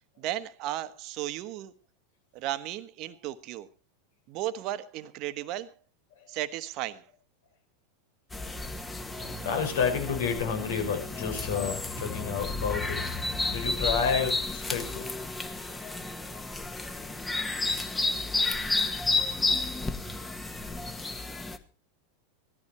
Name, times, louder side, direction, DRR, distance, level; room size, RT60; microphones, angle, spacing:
voice 1, 0.2-1.7 2.3-3.7 4.3-5.7 6.3-7.0, right 13 dB, 50° right, 1.3 m, -35 dB
sound 1, 8.3-21.6, left 3 dB, 15° left, 1.8 m, -32 dB
voice 2, 9.4-13.0 13.5-15.1, left 6 dB, 70° left, 5.6 m, -30 dB
18.0 x 13.5 x 4.3 m
hypercardioid pair, 95°, 0 cm